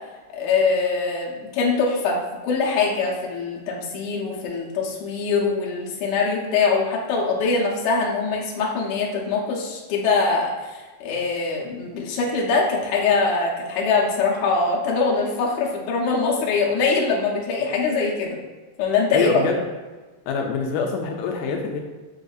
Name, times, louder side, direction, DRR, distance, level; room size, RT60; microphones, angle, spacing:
voice 1, 0.3-2.2 2.4-18.4 18.8-19.4, left 4 dB, 70° left, -3 dB, 1.9 m, -23 dB
voice 2, 19.1-19.7 20.3-21.8, left 4 dB, 85° left, 2 dB, 2.1 m, -24 dB
7.0 x 2.6 x 2.3 m, 1.3 s
omnidirectional pair, 3.7 m